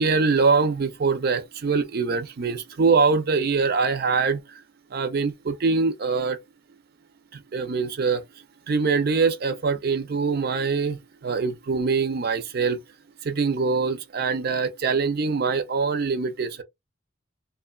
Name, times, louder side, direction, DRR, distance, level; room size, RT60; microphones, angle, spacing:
voice 1, 0.0-4.4 4.9-6.4 7.5-8.2 8.7-12.8 13.2-16.5, right 4 dB, 50° right, 0.5 m, -23 dB
2.9 x 2.1 x 2.3 m
head